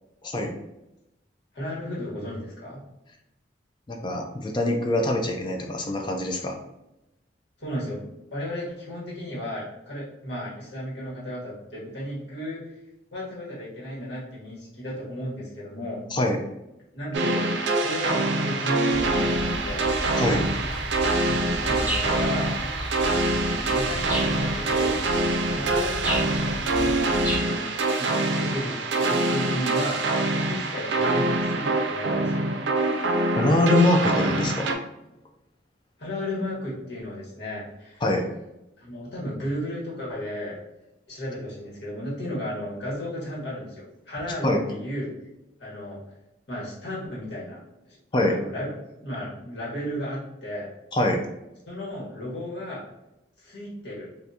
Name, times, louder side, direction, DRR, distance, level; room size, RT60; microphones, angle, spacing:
voice 1, 0.2-0.5 3.9-6.6 16.1-16.4 20.2-20.4 33.4-34.7 38.0-38.3 44.4-44.6 48.1-48.4 50.9-51.2, left 1 dB, 25° left, 3 dB, 0.4 m, -23 dB
voice 2, 1.5-2.8 7.6-12.6 13.1-16.0 16.9-17.4 17.7-19.9 21.2-22.6 23.7-25.0 25.5-27.7 28.0-30.0 30.4-32.5 36.0-38.0 38.8-40.6 41.1-45.1 45.6-46.0 46.5-47.6 47.9-48.0 48.3-48.7 49.0-50.7 51.7-52.8 53.4-54.1, left 1 dB, 70° left, -6 dB, 1.4 m, -34 dB
sound 1, 17.1-34.7, right 2 dB, 80° right, 0.5 m, -25 dB
sound 2, 18.9-27.4, equal, 10° right, 0.7 m, -33 dB
3.5 x 2.5 x 2.7 m, 0.90 s
head